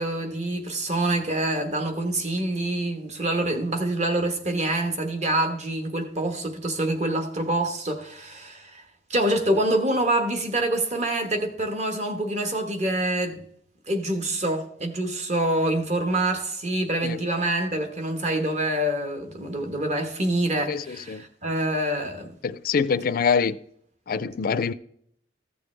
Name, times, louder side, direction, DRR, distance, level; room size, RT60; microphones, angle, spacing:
voice 1, 0.0-8.8 9.1-13.4 13.9-22.4, right 1 dB, 40° right, 1.3 m, -26 dB
voice 2, 20.7-21.2 22.4-23.6 24.1-24.7, left 6 dB, 55° left, 0.4 m, -25 dB
15.0 x 6.9 x 3.3 m
head